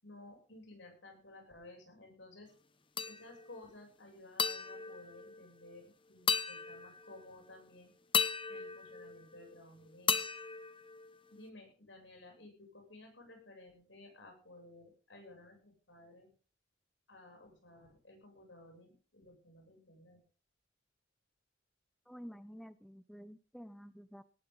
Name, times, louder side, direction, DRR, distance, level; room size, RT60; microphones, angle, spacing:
voice 1, 0.0-2.5 3.1-7.9 8.5-10.3 11.3-16.3 17.1-20.2, left 2 dB, 90° left, 2 dB, 7.8 m, -55 dB
sound 1, 3.0-3.6 4.4-5.8 6.3-7.3 8.1-9.6 10.1-11.5, left 6 dB, 30° left, 0.9 m, -36 dB
voice 2, 22.1-24.2, equal, ahead, 14 dB, 0.7 m, -50 dB
18.5 x 13.0 x 4.0 m, 0.37 s
head